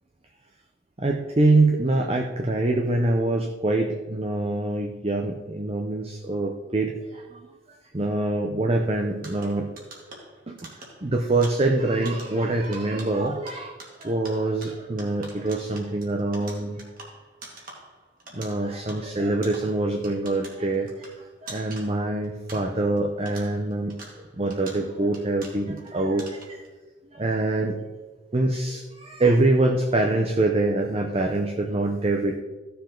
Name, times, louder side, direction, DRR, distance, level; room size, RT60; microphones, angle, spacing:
voice 1, 1.0-7.4 7.9-9.7 10.5-10.6 11.0-16.8 18.3-21.1 21.4-23.9 24.4-26.6 27.1-27.8 28.3-32.4, right 2 dB, 35° right, 3 dB, 0.8 m, -25 dB
sound 1, 9.2-23.0 23.3-25.9 26.2-26.7, right 2 dB, 50° right, 2.3 m, -46 dB
15.0 x 6.9 x 3.9 m, 1.3 s
head